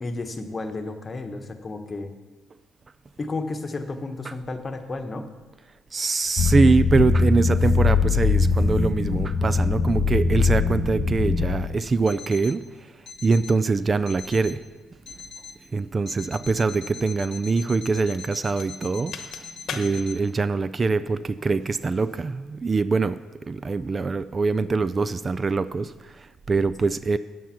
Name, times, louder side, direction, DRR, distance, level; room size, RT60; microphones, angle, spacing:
voice 1, 0.0-2.1 3.2-5.2 19.7-19.9 26.8-26.9, left 3 dB, 35° left, 7 dB, 1.1 m, -32 dB
voice 2, 5.9-12.9 13.2-14.6 15.7-19.1 19.7-23.2 23.5-27.2, right 4 dB, 35° right, 15 dB, 0.3 m, -23 dB
sound 1, 6.4-11.8 12.1-12.5 13.1-13.5 14.1-14.5 15.1-15.5 16.1-20.1, left 4 dB, 60° left, 1.0 m, -23 dB
9.3 x 7.4 x 5.8 m, 1.3 s
supercardioid pair, 60°, 0 cm